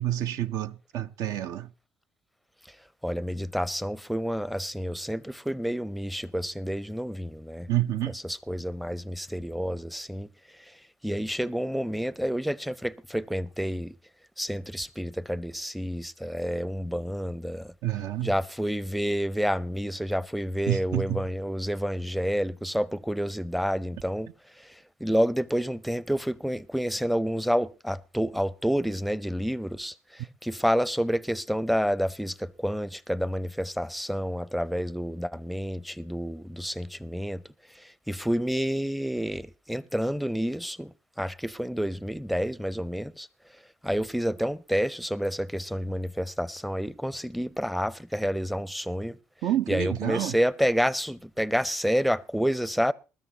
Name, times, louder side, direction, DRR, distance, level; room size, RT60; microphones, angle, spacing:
voice 1, 0.0-1.7 7.7-8.1 17.8-18.3 20.7-21.3 49.4-50.4, right 13 dB, 65° right, 0.6 m, -28 dB
voice 2, 3.0-7.7 8.1-10.3 11.0-13.9 14.4-17.7 18.2-24.3 24.6-24.8 25.0-37.4 37.7-43.3 43.8-49.2 49.7-52.9, equal, ahead, 0.6 m, -29 dB
20.5 x 13.0 x 2.9 m
hypercardioid pair, 50°, 7 cm